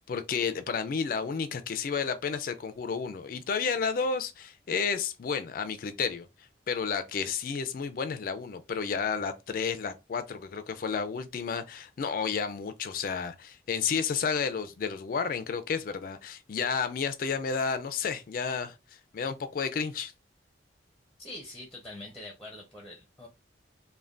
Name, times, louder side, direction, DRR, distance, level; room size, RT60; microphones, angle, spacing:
voice 1, 0.0-6.3 6.7-18.8 19.1-20.1, left 6 dB, 50° left, 0.3 m, -31 dB
voice 2, 21.2-23.3, left 1 dB, 5° left, 0.6 m, -44 dB
3.3 x 2.1 x 2.4 m
head